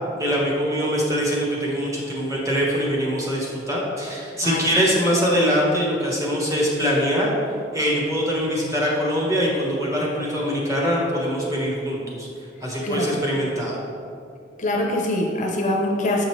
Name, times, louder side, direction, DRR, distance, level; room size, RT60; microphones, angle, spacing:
voice 1, 0.2-7.3 7.7-12.3 12.6-13.7, equal, 15° right, -3 dB, 1.2 m, -23 dB
voice 2, 12.8-13.2 14.6-16.3, left 1 dB, 40° left, 0 dB, 0.7 m, -23 dB
7.6 x 5.2 x 3.1 m, 2.4 s
head